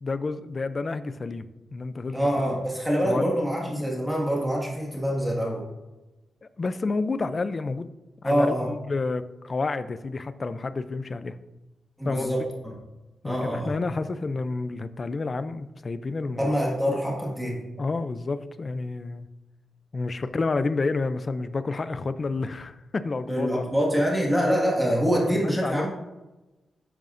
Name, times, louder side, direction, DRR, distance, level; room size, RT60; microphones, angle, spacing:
voice 1, 0.0-2.6 3.0-3.3 3.6-3.9 6.4-7.9 8.2-11.4 12.0-12.4 13.2-16.5 17.8-19.3 19.9-23.7 25.2-25.3 25.6-25.9, left 3 dB, 30° left, 12 dB, 0.4 m, -30 dB
voice 2, 2.1-5.6 8.2-8.7 12.0-12.7 13.2-13.8 16.4-17.6 23.3-25.9, equal, ahead, -3 dB, 1.7 m, -25 dB
11.0 x 9.1 x 2.6 m, 1.1 s
wide cardioid pair, 175°, 0 cm